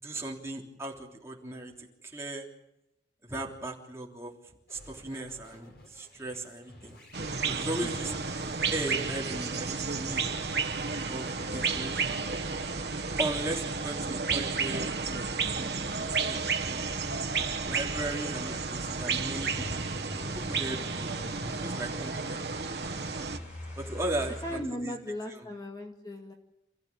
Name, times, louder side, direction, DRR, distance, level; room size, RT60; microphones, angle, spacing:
voice 1, 0.0-1.7 2.0-2.5 3.3-4.3 4.7-7.0 7.5-8.1 8.7-10.2 11.1-12.2 13.2-16.9 17.6-22.4 23.7-24.9, right 1 dB, 15° right, -1 dB, 3.3 m, -37 dB
sound 1, 4.7-12.2, equal, 60° left, 6.3 m, -52 dB
sound 2, 7.1-23.4, right 4 dB, 70° right, 1.3 m, -32 dB
sound 3, 7.7-24.6, left 1 dB, 40° left, 6.6 m, -46 dB
voice 2, 7.8-8.2 24.4-26.3, left 1 dB, 20° left, 2 dB, 2.0 m, -38 dB
28.5 x 15.0 x 8.7 m, 0.89 s
head